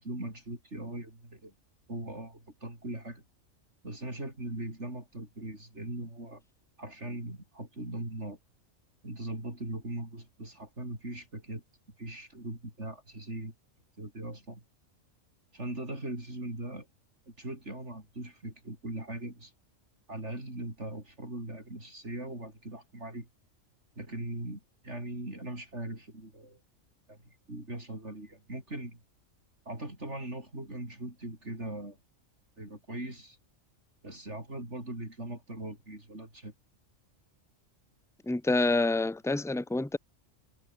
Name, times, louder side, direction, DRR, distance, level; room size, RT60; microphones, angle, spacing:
voice 1, 0.0-1.5 1.9-3.2 3.8-6.4 6.8-8.4 9.0-11.6 12.0-13.5 14.0-14.6 15.5-16.9 17.3-19.5 20.1-23.3 24.0-26.6 27.1-27.2 27.5-29.0 29.7-32.0 32.6-33.4 34.0-36.5, right 1 dB, 60° right, 7.2 m, -40 dB
voice 2, 38.3-40.0, left 2 dB, ahead, 1.1 m, -27 dB
omnidirectional pair, 1.3 m